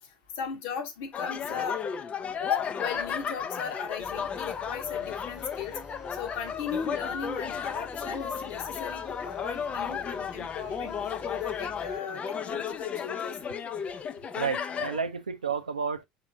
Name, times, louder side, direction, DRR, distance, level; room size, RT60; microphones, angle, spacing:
voice 1, 0.3-1.8 2.4-5.7 6.1-13.4, left 7 dB, 60° left, 1.2 m, -36 dB
sound 1, 1.1-15.0, left 7 dB, 35° left, 0.6 m, -34 dB
sound 2, 4.0-12.0, equal, 15° right, 1.2 m, -50 dB
voice 2, 14.4-16.0, right 6 dB, 85° right, 0.5 m, -31 dB
4.5 x 3.6 x 2.7 m
figure-of-eight pair, 70°, 4 cm